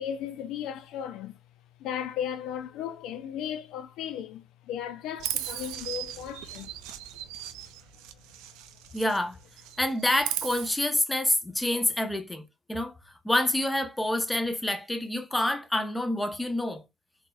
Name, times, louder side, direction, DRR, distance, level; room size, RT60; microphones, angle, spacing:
voice 1, 0.0-1.4 1.8-6.7, left 9 dB, 60° left, 0.4 m, -35 dB
Chirp tweet, 5.2-9.2 9.5-10.7, right 12 dB, 65° right, 0.4 m, -37 dB
voice 2, 8.9-9.4 9.8-12.9 13.2-16.8, left 1 dB, 10° left, 0.8 m, -27 dB
3.9 x 3.3 x 2.3 m
figure-of-eight pair, 55°, 0 cm